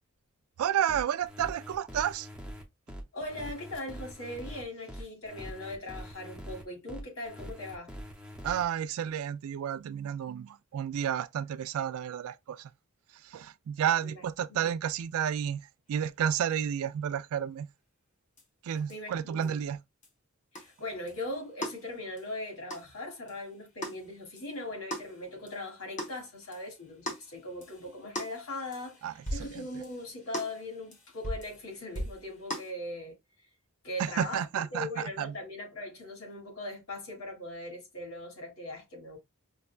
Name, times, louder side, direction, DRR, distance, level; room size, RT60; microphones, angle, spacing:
voice 1, 0.6-2.3 8.4-12.7 13.1-15.6 15.9-17.7 18.6-19.8 29.0-29.8 34.0-35.4, right 9 dB, 80° right, 0.3 m, -31 dB
sound 1, 0.9-8.6, equal, 5° right, 0.6 m, -43 dB
voice 2, 3.1-7.9 14.0-14.1 14.5-14.7 18.9-19.6 20.5-29.0 29.3-33.1 33.8-34.4 34.7-39.2, left 1 dB, 80° left, 1.7 m, -40 dB
sound 2, 18.4-18.5 18.9-19.0 19.4-19.5 20.0-20.1 20.5-32.7, equal, 35° left, 1.0 m, -42 dB
5.2 x 2.2 x 2.3 m
head